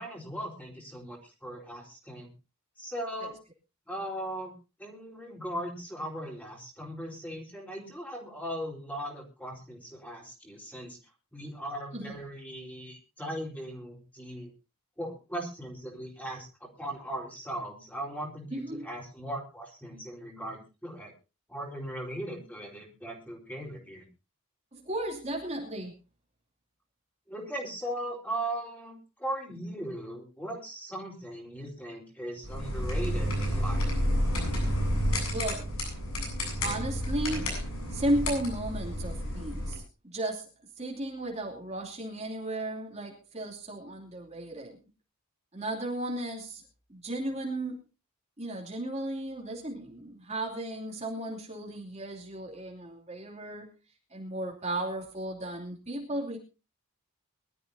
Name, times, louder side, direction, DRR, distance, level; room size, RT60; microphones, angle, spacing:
voice 1, 0.0-2.3 2.8-3.4 3.9-4.5 4.8-11.0 11.3-14.5 15.0-21.1 21.5-24.0 27.3-33.9, right 1 dB, 5° left, 0 dB, 4.2 m, -38 dB
voice 2, 18.5-18.9 24.7-25.9 35.3-35.7 36.6-37.5 37.9-40.4 40.8-44.8 45.5-46.6 46.9-47.8 48.4-53.7 54.1-56.4, right 1 dB, 30° right, -2 dB, 2.8 m, -34 dB
sound 1, 32.4-39.8, equal, 70° left, 7.9 m, -30 dB
23.0 x 13.0 x 2.7 m, 0.30 s
head